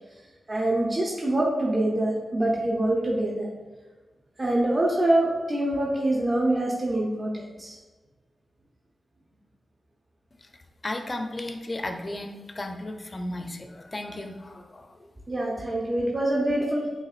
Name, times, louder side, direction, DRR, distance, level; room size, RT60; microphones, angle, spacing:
voice 1, 0.5-3.5 4.4-7.8 15.3-16.9, right 1 dB, 30° right, -4 dB, 0.7 m, -25 dB
voice 2, 10.8-15.1, left 1 dB, 35° left, 5 dB, 0.5 m, -35 dB
6.4 x 2.4 x 2.4 m, 1.3 s
cardioid pair, 60°, 0 cm